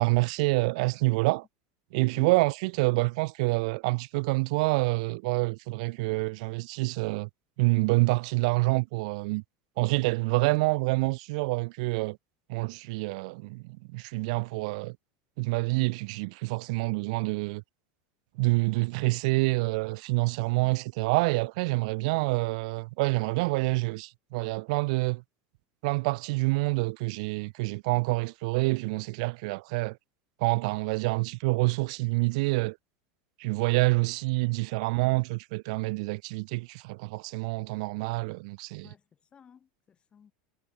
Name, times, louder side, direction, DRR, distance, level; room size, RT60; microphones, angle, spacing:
voice 1, 0.0-1.4 1.9-7.3 7.6-9.4 9.8-12.2 12.5-13.6 13.9-15.0 15.4-17.6 18.4-25.2 25.8-30.0 30.4-32.8 33.4-38.9, right 26 dB, 70° right, 0.9 m, -27 dB
voice 2, 2.0-2.3 38.8-40.3, left 7 dB, 25° left, 6.7 m, -55 dB
supercardioid pair, 125°, 4 cm